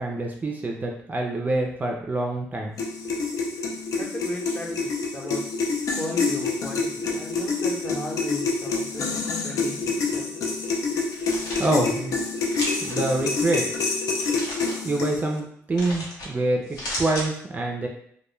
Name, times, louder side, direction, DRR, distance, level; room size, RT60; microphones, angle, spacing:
voice 1, 0.0-2.8 11.6-12.2 12.8-13.7 14.8-17.9, right 2 dB, 30° right, 1 dB, 0.4 m, -26 dB
sound 1, 2.8-15.4, left 4 dB, 65° left, 0.4 m, -27 dB
voice 2, 4.0-5.4 5.9-10.3, left 1 dB, 25° left, -2 dB, 0.7 m, -36 dB
sound 2, 11.0-11.7 12.5-13.0 14.1-14.8 15.8-16.3 16.6-17.3, left 1 dB, 90° left, 0.8 m, -33 dB
2.2 x 2.1 x 3.0 m, 0.66 s
cardioid pair, 90°, 6 cm